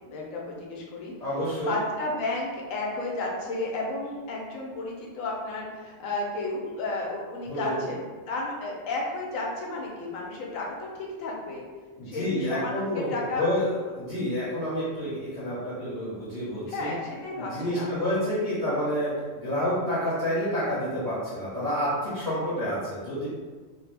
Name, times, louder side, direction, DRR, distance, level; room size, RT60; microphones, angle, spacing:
voice 1, 0.1-1.1 1.6-10.9 11.2-11.6 12.1-13.4 16.7-17.9, left 2 dB, 80° left, -2 dB, 1.0 m, -32 dB
voice 2, 1.2-1.7 7.5-7.8 12.0-16.9 17.4-19.1 19.3-23.3, equal, 35° left, -12 dB, 0.9 m, -29 dB
2.3 x 2.1 x 3.2 m, 1.4 s
omnidirectional pair, 1.4 m